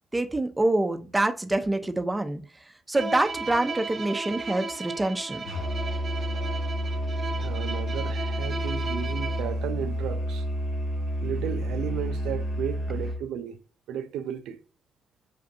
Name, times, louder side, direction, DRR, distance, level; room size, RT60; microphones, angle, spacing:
voice 1, 0.1-2.4 2.9-5.5, right 2 dB, 20° right, 0.6 m, -26 dB
Bowed string instrument, 2.9-9.6, right 3 dB, 50° right, 1.1 m, -35 dB
Musical instrument, 5.4-13.2, equal, 80° left, 1.8 m, -30 dB
voice 2, 7.2-10.5 11.2-13.6 13.9-14.6, right 9 dB, 80° right, 0.3 m, -34 dB
5.9 x 2.5 x 2.6 m
hypercardioid pair, 45°, 0 cm